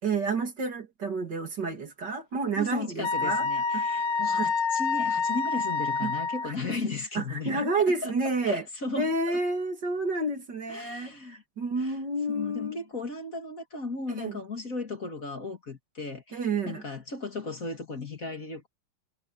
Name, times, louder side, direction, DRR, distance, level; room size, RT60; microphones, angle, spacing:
voice 1, 0.0-3.5 3.7-4.0 4.4-4.5 6.0-6.1 6.4-6.5 7.1-8.6 9.0-12.8 14.2-14.4 16.3-16.8, right 3 dB, 55° right, 3.0 m, -30 dB
voice 2, 2.6-7.7 8.0-8.1 8.4-9.4 10.7-11.4 11.8-12.0 12.3-16.4 16.7-18.7, left 3 dB, 40° left, 2.8 m, -36 dB
Wind instrument woodwind instrument, 3.0-6.5, left 4 dB, 80° left, 2.1 m, -27 dB
omnidirectional pair, 2.3 m